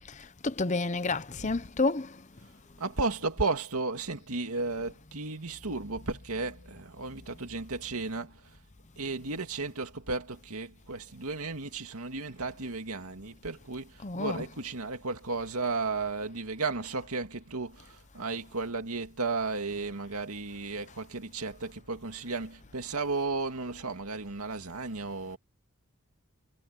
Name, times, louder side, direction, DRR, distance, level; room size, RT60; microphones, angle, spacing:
voice 1, 0.4-2.1 14.0-14.5, left 3 dB, 35° left, 0.8 m, -29 dB
voice 2, 2.8-8.6 9.0-25.4, right 3 dB, 90° right, 2.3 m, -34 dB
head